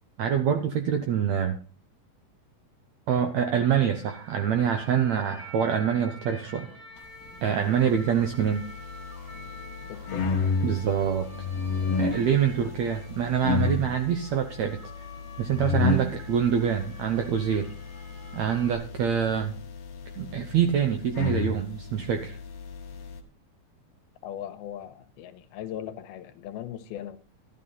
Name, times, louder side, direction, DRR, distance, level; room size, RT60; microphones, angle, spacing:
voice 1, 0.2-1.5 3.1-6.7 7.4-8.6 10.6-11.3 12.0-14.8 15.4-17.7 18.3-19.6 20.2-22.4, right 8 dB, 80° right, 1.6 m, -25 dB
sound 1, 3.7-18.8, equal, 25° right, 5.4 m, -48 dB
sound 2, 7.8-23.2, left 4 dB, 50° left, 2.1 m, -32 dB
voice 2, 9.9-10.4 24.2-27.2, left 11 dB, 90° left, 2.8 m, -39 dB
12.5 x 12.5 x 4.0 m
omnidirectional pair, 4.3 m